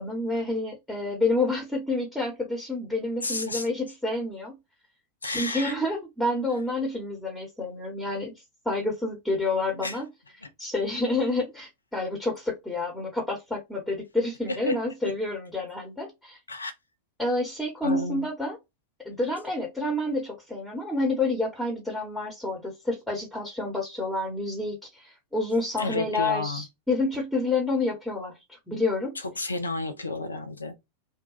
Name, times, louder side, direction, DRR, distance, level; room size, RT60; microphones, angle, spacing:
voice 1, 0.0-4.6 5.2-8.3 8.6-10.0 10.6-16.4 17.2-18.6 19.0-29.2, left 2 dB, 5° left, 1.1 m, -29 dB
voice 2, 3.2-3.7 5.2-5.7 9.8-10.0 10.4-10.5 14.5-14.8 15.0-15.1 16.5-16.7 17.8-18.3 25.8-26.7 29.1-30.8, left 2 dB, 80° left, 0.5 m, -31 dB
2.7 x 2.2 x 3.8 m
figure-of-eight pair, 90°, 0 cm